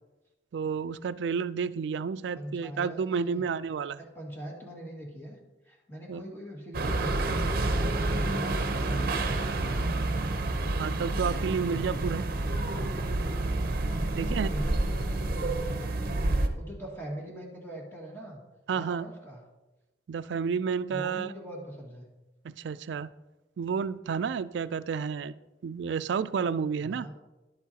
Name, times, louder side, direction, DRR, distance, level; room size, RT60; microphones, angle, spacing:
voice 1, 0.5-4.0 6.1-6.2 10.8-12.3 14.1-14.5 18.7-19.1 20.1-21.3 22.4-23.1 23.6-25.4 25.6-27.1, right 6 dB, 80° right, 16 dB, 0.3 m, -31 dB
voice 2, 2.3-3.4 4.0-5.4 5.6-10.2 14.0-18.4 18.7-19.4 20.9-22.1 26.8-27.1, equal, 15° left, -2 dB, 1.9 m, -42 dB
sound 1, 6.7-16.5, right 2 dB, 55° right, 0.7 m, -29 dB
11.0 x 8.3 x 2.8 m, 1.1 s
head